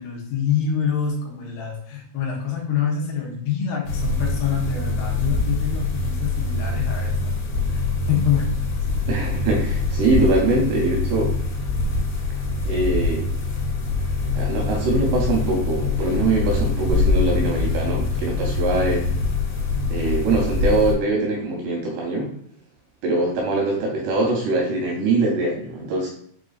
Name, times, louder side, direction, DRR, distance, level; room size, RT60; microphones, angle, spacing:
voice 1, 0.0-7.3 7.7-8.5, left 7 dB, 85° left, -1 dB, 3.3 m, -26 dB
sound 1, 3.9-20.9, left 3 dB, 65° left, 3.2 m, -24 dB
voice 2, 9.1-11.3 12.7-13.3 14.4-19.1 19.9-22.3 23.0-26.1, right 2 dB, 85° right, -1 dB, 2.3 m, -23 dB
7.2 x 2.6 x 2.4 m, 0.64 s
omnidirectional pair, 5.6 m